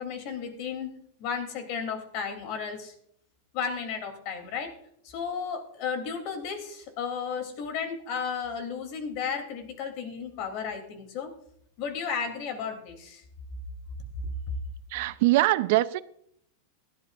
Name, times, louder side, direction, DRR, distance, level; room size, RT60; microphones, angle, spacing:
voice 1, 0.0-2.9 3.5-4.7 5.0-11.3 11.8-13.2, left 6 dB, 45° left, 3.0 m, -34 dB
voice 2, 14.9-16.0, right 17 dB, 55° right, 0.6 m, -23 dB
17.5 x 12.5 x 2.5 m
supercardioid pair, 160°, 0 cm